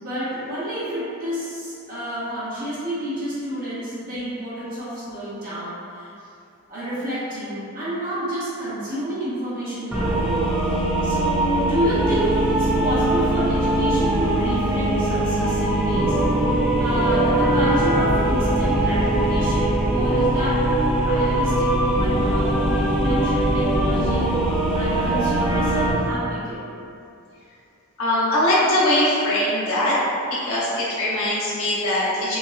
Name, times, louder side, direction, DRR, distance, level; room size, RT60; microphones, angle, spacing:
voice 1, 0.0-6.1 6.7-10.5 11.0-26.7, equal, 40° right, -12 dB, 1.2 m, -29 dB
sound 1, 9.9-25.9, right 1 dB, 5° right, 0.7 m, -21 dB
voice 2, 28.0-30.0 30.3-32.4, left 1 dB, 65° left, -9 dB, 0.8 m, -21 dB
5.3 x 2.3 x 2.5 m, 2.6 s
head